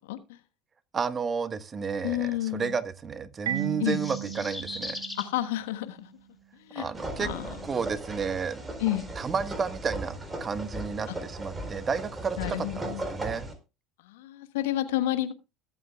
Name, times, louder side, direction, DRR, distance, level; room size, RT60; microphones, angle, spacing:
voice 1, 0.9-5.0 6.7-7.3 7.6-8.6 9.1-13.5, right 5 dB, 30° right, 12 dB, 1.3 m, -32 dB
voice 2, 2.0-2.7 3.8-4.0 5.2-6.1 6.7-6.9 7.2-7.5 8.8-9.0 11.1-11.2 12.4-13.0 14.1-15.3, left 14 dB, 75° left, 9 dB, 1.3 m, -30 dB
Marimba xylophone, 3.5-6.1, right 11 dB, 75° right, 1.8 m, -36 dB
sound 1, 3.6-5.3, left 2 dB, 10° left, 3.3 m, -39 dB
sound 2, 6.9-13.5, right 1 dB, 15° right, 4.1 m, -37 dB
22.0 x 8.4 x 2.3 m, 0.28 s
hypercardioid pair, 70°, 0 cm